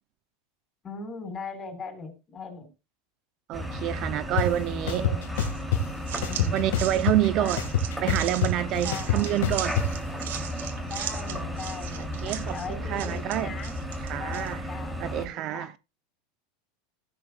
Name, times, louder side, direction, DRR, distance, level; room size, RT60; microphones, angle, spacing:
voice 1, 0.8-2.7 4.3-5.2 6.2-6.7 7.4-7.6 8.8-9.4 10.8-13.8 14.2-15.7, left 4 dB, 25° left, 5.1 m, -40 dB
sound 1, 3.5-15.3, equal, 5° right, 3.4 m, -34 dB
voice 2, 3.5-5.1 6.5-7.6 8.0-9.8 12.0-13.5 14.0-14.7 15.0-15.7, right 13 dB, 45° right, 0.7 m, -28 dB
sound 2, 4.4-4.5 4.9-5.8 6.2-7.3 7.6-9.9, left 7 dB, 80° left, 2.1 m, -26 dB
sound 3, 5.3-14.5, right 10 dB, 85° right, 1.9 m, -39 dB
15.5 x 10.5 x 2.5 m
supercardioid pair, 130°, 0 cm